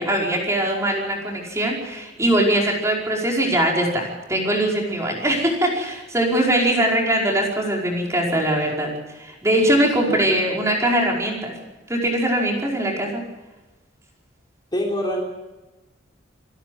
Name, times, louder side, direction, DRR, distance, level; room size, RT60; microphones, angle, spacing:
voice 1, 0.0-8.9 9.2-11.5 11.9-13.2, right 1 dB, 15° right, -1 dB, 5.1 m, -21 dB
voice 2, 10.0-10.3 14.7-15.2, equal, 25° left, 0 dB, 3.6 m, -25 dB
28.0 x 12.0 x 7.9 m, 1.1 s
head